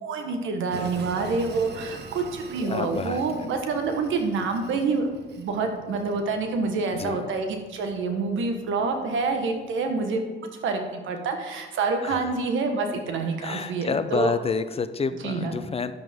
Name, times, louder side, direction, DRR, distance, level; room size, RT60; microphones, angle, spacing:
voice 1, 0.0-5.1 5.3-10.2 10.6-14.3 15.2-15.5, right 4 dB, 75° right, 5 dB, 1.5 m, -27 dB
Train, 0.7-9.7, right 5 dB, 55° right, 1.1 m, -44 dB
voice 2, 2.6-3.5 7.0-7.2 12.0-12.3 13.4-15.9, left 5 dB, 30° left, 11 dB, 0.6 m, -29 dB
11.0 x 7.6 x 3.7 m, 1.3 s
cardioid pair, 90°, 20 cm